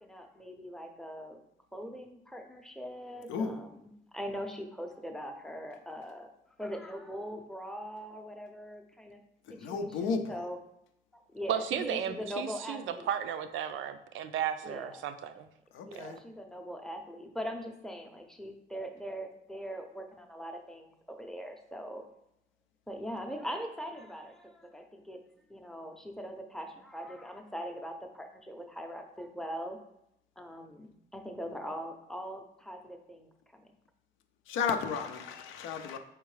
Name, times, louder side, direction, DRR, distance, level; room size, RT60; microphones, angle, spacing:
voice 1, 0.0-1.4 1.7-6.3 6.6-9.2 9.5-10.6 11.3-13.1 14.6-15.0 15.9-22.0 22.9-25.2 25.5-29.8 30.4-33.6, equal, ahead, 4 dB, 0.6 m, -41 dB
voice 2, 3.3-3.6 9.5-10.4 15.7-16.2 34.5-36.0, left 5 dB, 90° left, 7 dB, 0.5 m, -33 dB
voice 3, 11.5-15.5 15.9-16.1, right 9 dB, 80° right, 9 dB, 0.4 m, -34 dB
4.5 x 3.6 x 3.2 m, 0.79 s
cardioid pair, 90°, 20 cm